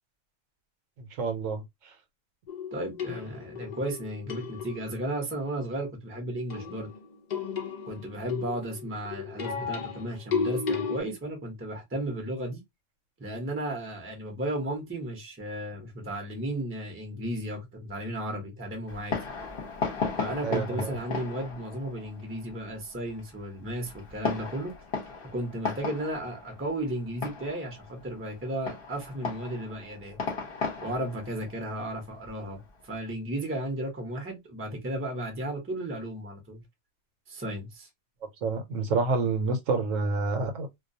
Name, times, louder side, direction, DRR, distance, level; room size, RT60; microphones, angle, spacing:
voice 1, 1.0-1.6 20.4-20.9 38.4-40.7, right 4 dB, 70° right, 1.0 m, -28 dB
sound 1, 2.5-5.0 6.5-11.0, left 5 dB, 70° left, 0.4 m, -34 dB
voice 2, 2.7-6.9 7.9-12.6 13.2-19.2 20.2-24.7 25.3-30.2 30.8-36.6 37.3-37.9, right 1 dB, 15° right, 0.5 m, -34 dB
Fireworks, 18.9-33.0, left 4 dB, 50° left, 0.8 m, -37 dB
2.3 x 2.3 x 2.5 m
omnidirectional pair, 1.5 m